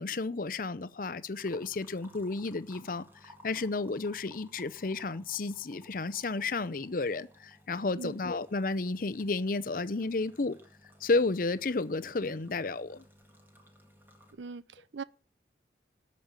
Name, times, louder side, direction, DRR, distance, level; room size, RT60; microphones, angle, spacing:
voice 1, 0.0-10.6 11.0-13.0, left 3 dB, 50° left, 0.6 m, -32 dB
sound 1, 1.3-14.3, equal, 10° right, 1.9 m, -58 dB
voice 2, 14.3-15.0, right 4 dB, 85° right, 0.6 m, -41 dB
13.0 x 5.4 x 8.9 m
head